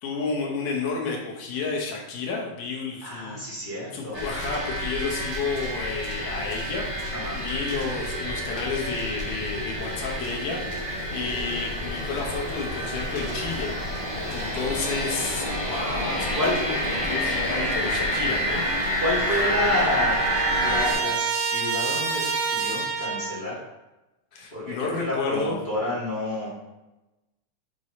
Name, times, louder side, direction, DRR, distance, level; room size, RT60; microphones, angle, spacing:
voice 1, 0.0-3.4 3.9-10.8 11.1-13.8 14.3-18.8 19.3-19.6 24.3-25.6, left 4 dB, 75° left, 0 dB, 2.4 m, -31 dB
voice 2, 3.0-4.2 7.1-7.4 15.5-15.7 16.3-16.6 19.0-20.2 20.6-23.6 24.5-26.5, left 1 dB, 25° left, -5 dB, 1.1 m, -29 dB
sound 1, 4.1-20.9, equal, 10° right, 1.3 m, -28 dB
Trumpet, 18.7-18.8 19.1-23.5, right 5 dB, 65° right, 2.4 m, -28 dB
7.6 x 3.4 x 4.1 m, 1.0 s
omnidirectional pair, 3.9 m